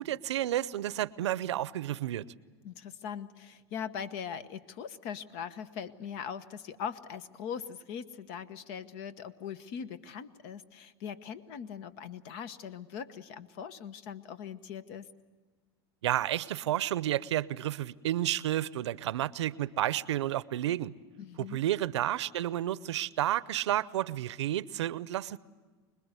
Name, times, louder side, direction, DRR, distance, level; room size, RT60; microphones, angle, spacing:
voice 1, 0.0-2.3 16.0-20.9 21.4-25.4, right 13 dB, 85° right, 0.6 m, -31 dB
voice 2, 2.6-15.1 21.2-21.6, left 7 dB, 60° left, 1.2 m, -41 dB
25.5 x 20.5 x 8.2 m
supercardioid pair, 115°, 14 cm